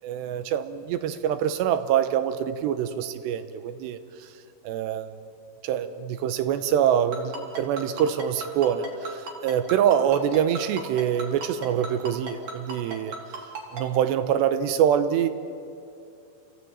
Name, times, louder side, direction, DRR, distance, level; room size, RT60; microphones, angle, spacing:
voice 1, 0.0-4.3 4.6-5.1 5.6-13.2 13.7-15.3, right 9 dB, 80° right, 10 dB, 3.1 m, -25 dB
Ringtone, 7.1-13.8, right 3 dB, 50° right, 4.3 m, -35 dB
29.0 x 16.0 x 8.9 m, 2.6 s
omnidirectional pair, 5.0 m